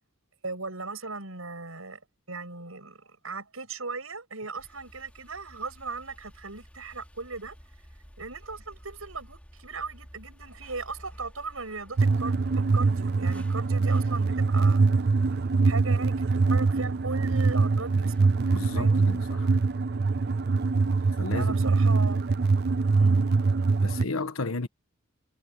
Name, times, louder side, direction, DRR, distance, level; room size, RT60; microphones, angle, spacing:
voice 1, 0.4-2.0 2.3-7.6 8.2-14.8 15.6-18.3 18.6-19.4 21.3-22.5 23.0-23.3, right 4 dB, 85° right, 7.2 m, -38 dB
sound 1, 4.6-19.8, equal, 5° left, 3.4 m, -52 dB
sound 2, 12.0-24.0, right 4 dB, 50° right, 0.5 m, -23 dB
voice 2, 18.5-19.5 21.2-21.6 23.8-24.7, left 3 dB, 85° left, 1.5 m, -33 dB
head